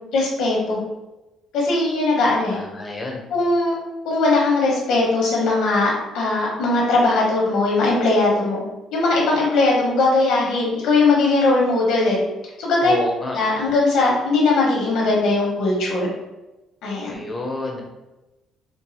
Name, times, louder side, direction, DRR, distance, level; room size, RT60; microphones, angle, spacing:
voice 1, 0.1-0.8 1.5-2.6 3.3-3.7 4.0-8.6 8.9-12.2 12.6-12.9 13.3-16.1 16.8-17.2, left 3 dB, 75° left, -3 dB, 1.2 m, -19 dB
voice 2, 2.5-3.2 12.8-13.4 17.0-17.8, left 1 dB, 15° left, 0 dB, 0.7 m, -29 dB
4.6 x 2.4 x 2.8 m, 1.0 s
cardioid pair, 175°, 0 cm